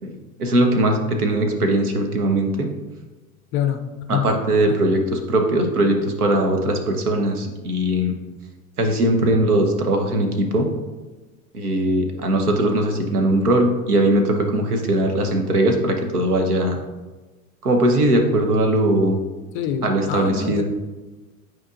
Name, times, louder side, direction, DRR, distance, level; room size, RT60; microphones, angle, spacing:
voice 1, 0.0-2.7 4.1-8.1 8.8-10.7 11.5-16.8 17.6-19.2 19.8-20.6, right 1 dB, 85° right, 3 dB, 1.1 m, -20 dB
voice 2, 3.5-3.8 4.1-4.3 4.7-4.9 19.5-20.6, left 9 dB, 30° left, 7 dB, 0.4 m, -25 dB
8.7 x 4.5 x 2.5 m, 1.2 s
hypercardioid pair, 90°, 44 cm